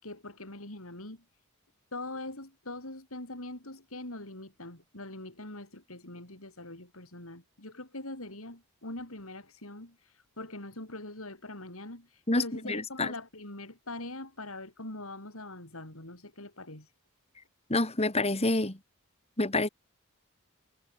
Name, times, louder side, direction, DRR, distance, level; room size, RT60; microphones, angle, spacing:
voice 1, 0.0-1.2 1.9-10.0 10.4-16.9, left 2 dB, 75° left, 6.2 m, -42 dB
voice 2, 12.3-13.1 17.7-18.8 19.4-19.7, left 2 dB, 30° left, 2.5 m, -28 dB
head